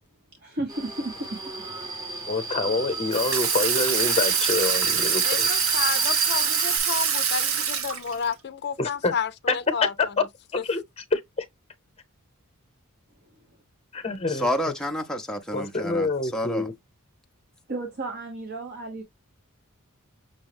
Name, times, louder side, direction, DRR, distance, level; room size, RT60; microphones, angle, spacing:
voice 1, 0.4-1.4 17.7-19.0, right 2 dB, 50° right, 1.1 m, -33 dB
Subway metro underground, 0.7-6.8, right 3 dB, 15° right, 1.0 m, -31 dB
voice 2, 2.3-5.5 8.8-9.1 9.5-9.6 10.2-10.3 10.6-11.5 13.9-14.5 15.5-16.7, left 3 dB, 30° left, 0.9 m, -26 dB
Water tap faucet / Sink (filling or washing), 3.1-8.3, right 7 dB, 70° right, 0.9 m, -25 dB
voice 3, 5.2-9.9, left 6 dB, 50° left, 0.5 m, -31 dB
voice 4, 14.3-16.7, equal, 5° left, 0.6 m, -29 dB
6.2 x 2.2 x 3.4 m
head